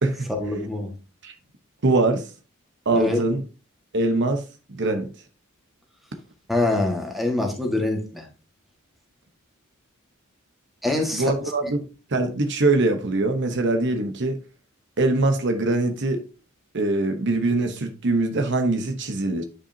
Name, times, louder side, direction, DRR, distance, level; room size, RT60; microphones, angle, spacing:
voice 1, 0.3-0.9 2.9-3.2 6.5-8.2 10.8-11.3, left 2 dB, ahead, 1.7 m, -24 dB
voice 2, 1.8-2.2 2.9-3.4 3.9-4.4 4.7-5.1 11.1-11.8 12.1-14.4 15.0-16.2 16.7-19.4, right 2 dB, 55° right, 1.0 m, -22 dB
10.0 x 5.4 x 2.8 m
head